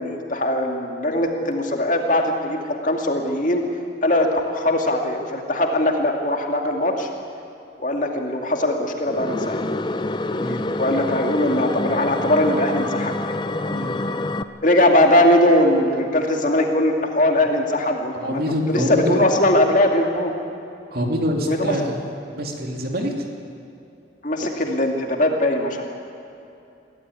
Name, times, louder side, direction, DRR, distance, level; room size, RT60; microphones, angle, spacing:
voice 1, 0.0-3.6 4.0-7.1 7.8-9.6 10.8-13.3 14.6-18.4 18.7-20.3 21.5-21.7 24.2-25.8, left 1 dB, 40° left, 3 dB, 2.3 m, -20 dB
sound 1, 9.1-14.4, left 2 dB, 25° left, 0.6 m, -26 dB
voice 2, 10.3-10.7 13.7-14.0 18.1-19.2 20.9-22.0 22.3-23.3, equal, 50° right, 2 dB, 2.7 m, -25 dB
22.5 x 16.0 x 9.6 m, 2.7 s
head